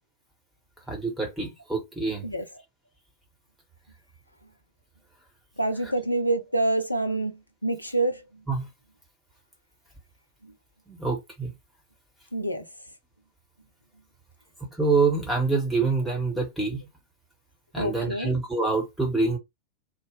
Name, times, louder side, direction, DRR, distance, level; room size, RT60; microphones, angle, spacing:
voice 1, 0.9-2.2 8.5-8.6 10.9-11.5 14.8-16.8 17.7-19.4, right 4 dB, 5° right, 1.6 m, -26 dB
voice 2, 5.6-8.2 10.4-10.5 12.3-12.7 17.8-18.3, right 2 dB, 85° left, 0.5 m, -27 dB
2.8 x 2.3 x 3.2 m
figure-of-eight pair, 90°, 0 cm